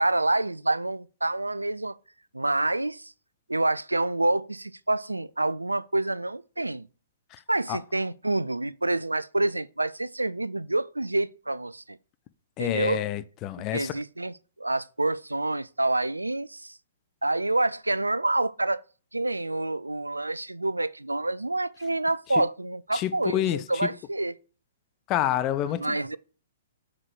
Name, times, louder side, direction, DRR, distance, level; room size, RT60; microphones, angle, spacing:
voice 1, 0.0-2.0 2.3-3.1 3.5-6.9 7.5-12.0 12.6-13.0 13.6-16.8 17.2-18.8 19.1-24.4 25.7-26.2, right 2 dB, 90° right, 0.3 m, -27 dB
voice 2, 12.6-13.9 22.3-22.4 22.9-23.6 25.1-26.0, left 12 dB, 30° left, 0.5 m, -28 dB
5.8 x 4.9 x 4.7 m
figure-of-eight pair, 115°, 0 cm